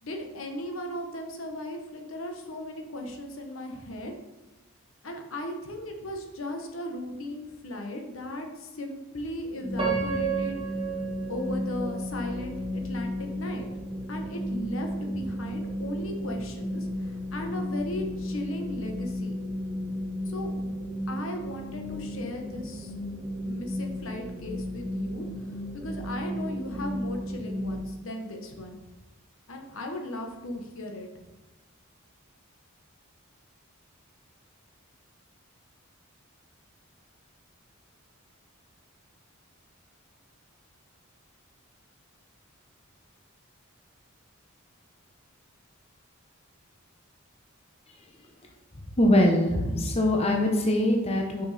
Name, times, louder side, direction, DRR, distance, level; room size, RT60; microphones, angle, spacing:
voice 1, 0.0-4.1 5.0-10.6 11.3-13.7 14.1-19.3 20.3-20.7 21.1-22.9 23.4-25.2 25.7-28.8 29.5-31.1, left 1 dB, 65° left, 3 dB, 1.1 m, -37 dB
sound 1, 9.6-27.8, left 1 dB, 5° left, 1.5 m, -34 dB
Piano, 9.8-12.8 13.4-13.5 14.1-14.3, right 7 dB, 25° right, 2.0 m, -33 dB
voice 2, 49.0-51.5, left 1 dB, 30° left, 1 dB, 0.9 m, -22 dB
6.3 x 5.9 x 4.2 m, 1.1 s
head